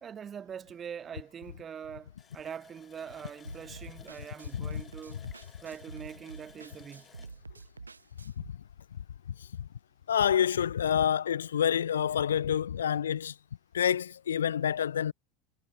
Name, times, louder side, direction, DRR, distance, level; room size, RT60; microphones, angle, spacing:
voice 1, 0.0-5.3 5.6-7.1, right 8 dB, 25° right, 0.9 m, -43 dB
Water tap faucet, 2.2-8.7 9.0-9.1 9.6-9.7, left 6 dB, 25° left, 4.2 m, -58 dB
sound 1, 3.4-8.5, right 4 dB, 80° right, 3.5 m, -48 dB
voice 2, 4.5-4.8 5.1-5.3 8.4-8.5 9.3-9.7 10.1-13.4 13.7-15.1, left 9 dB, 70° left, 0.3 m, -28 dB
figure-of-eight pair, 80°, 0 cm